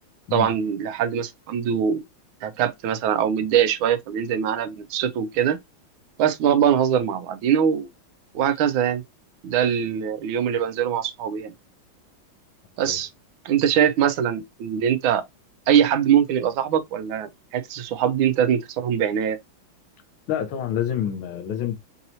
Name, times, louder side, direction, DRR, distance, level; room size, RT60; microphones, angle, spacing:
voice 1, 0.3-2.0 2.4-5.6 6.2-7.9 8.3-9.0 9.4-11.5 12.8-13.1 13.4-15.2 15.7-19.4, right 9 dB, 90° right, 1.4 m, -22 dB
voice 2, 20.3-21.8, left 10 dB, 85° left, 1.7 m, -27 dB
4.7 x 2.7 x 2.8 m
omnidirectional pair, 2.2 m